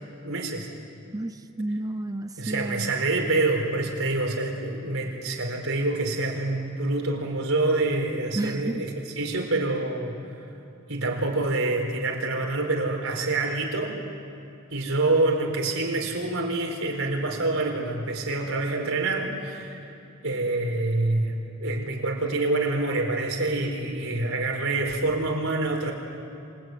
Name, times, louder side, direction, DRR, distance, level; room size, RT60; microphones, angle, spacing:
voice 1, 0.2-0.7 2.4-10.1 10.9-13.9 14.7-19.8 20.2-25.9, right 2 dB, 80° right, 1 dB, 4.5 m, -26 dB
voice 2, 1.1-2.9 8.4-8.7, right 1 dB, 15° right, 8 dB, 0.6 m, -31 dB
27.5 x 19.5 x 9.3 m, 2.5 s
head